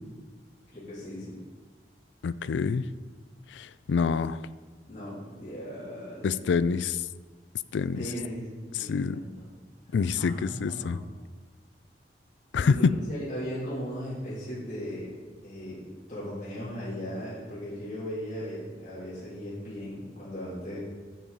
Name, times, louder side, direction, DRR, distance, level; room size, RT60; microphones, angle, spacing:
voice 1, 0.7-1.4 4.9-6.3 7.9-8.5 8.7-9.4 9.9-11.0 12.6-15.1 15.4-20.8, equal, 40° left, -10 dB, 3.0 m, -37 dB
voice 2, 2.2-2.8 3.5-4.4 6.2-7.0 7.7-8.0 8.8-9.2 9.9-11.0 12.5-12.9, left 5 dB, 80° left, 16 dB, 0.3 m, -26 dB
8.5 x 7.6 x 4.1 m, 1.4 s
head